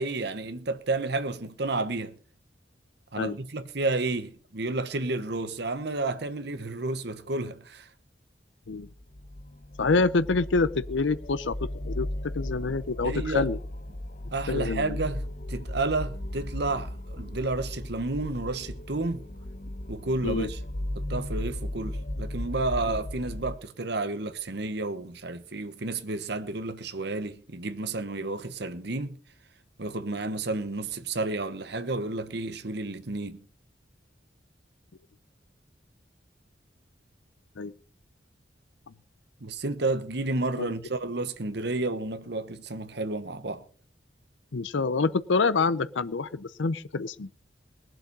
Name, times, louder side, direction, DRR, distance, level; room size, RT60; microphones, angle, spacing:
voice 1, 0.0-2.2 3.1-7.9 13.0-13.5 14.3-19.2 19.9-20.6 20.9-29.2 29.8-33.4 39.4-43.6, right 2 dB, 65° right, 1.1 m, -31 dB
sound 1, 8.8-23.6, left 1 dB, 45° left, 1.0 m, -36 dB
voice 2, 9.8-13.6 14.5-15.0 20.2-20.5 37.6-37.7 40.6-40.7 44.5-47.3, left 3 dB, 85° left, 0.6 m, -27 dB
20.0 x 7.7 x 5.4 m
head